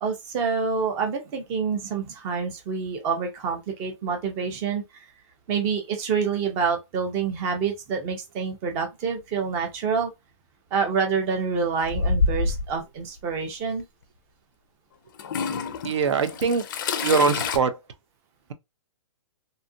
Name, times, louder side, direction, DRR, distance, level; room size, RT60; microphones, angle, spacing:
voice 1, 0.0-4.8 5.5-10.1 10.7-13.8, right 5 dB, 15° right, 0.5 m, -27 dB
Toilet flush / Trickle dribble, 11.8-12.7 13.8-13.9 15.2-17.6, left 4 dB, 40° left, 0.4 m, -27 dB
voice 2, 15.8-16.7 17.0-17.8, right 5 dB, 65° right, 0.6 m, -22 dB
2.7 x 2.4 x 2.6 m
hypercardioid pair, 165°, 16 cm